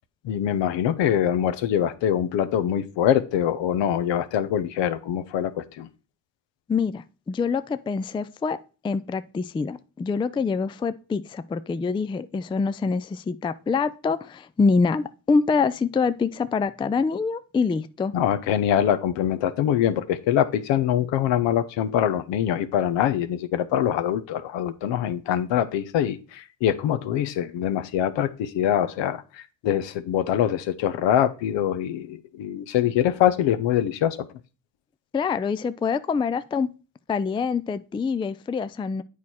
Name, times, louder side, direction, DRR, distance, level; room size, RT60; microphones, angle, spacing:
voice 1, 0.2-5.9 18.1-34.2, left 10 dB, 70° left, 0.9 m, -24 dB
voice 2, 6.7-8.6 8.8-18.1 35.1-36.7 37.1-39.0, left 5 dB, 10° left, 0.3 m, -25 dB
8.5 x 4.7 x 4.2 m
supercardioid pair, 65°, 45 cm